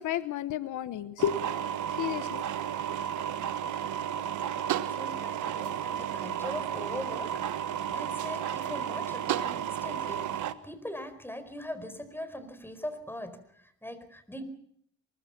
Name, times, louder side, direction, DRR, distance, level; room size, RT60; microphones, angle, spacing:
voice 1, 0.0-1.5 1.9-2.4, left 10 dB, 80° left, 14 dB, 1.1 m, -32 dB
sound 1, 1.2-10.5, right 9 dB, 80° right, 1.4 m, -33 dB
voice 2, 4.9-14.4, left 1 dB, 5° left, 11 dB, 4.6 m, -41 dB
23.5 x 22.0 x 5.9 m, 0.69 s
cardioid pair, 90°, 30 cm